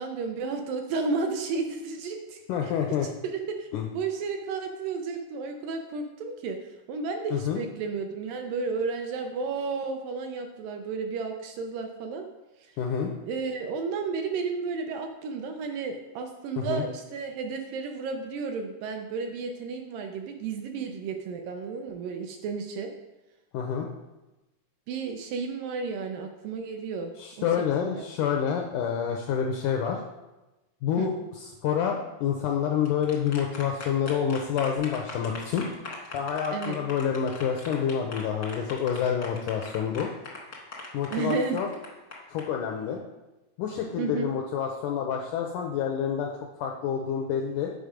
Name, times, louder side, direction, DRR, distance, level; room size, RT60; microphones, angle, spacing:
voice 1, 0.0-2.7 3.2-3.7 3.9-6.6 6.9-12.3 12.6-12.8 13.2-22.9 24.9-27.5 27.8-28.1 31.0-31.1 36.5-36.8 41.1-41.6 44.0-44.3, right 4 dB, 80° right, 4 dB, 2.1 m, -32 dB
voice 2, 2.5-3.1 3.7-3.9 7.3-7.6 12.8-13.1 16.6-16.9 23.5-23.9 27.2-30.0 30.8-35.7 36.1-40.1 40.9-41.7 42.3-43.0 43.6-47.7, left 8 dB, 90° left, 2 dB, 1.8 m, -28 dB
sound 1, 32.7-42.4, left 3 dB, 60° left, 0.9 m, -41 dB
8.0 x 5.2 x 5.0 m, 1.1 s
omnidirectional pair, 4.3 m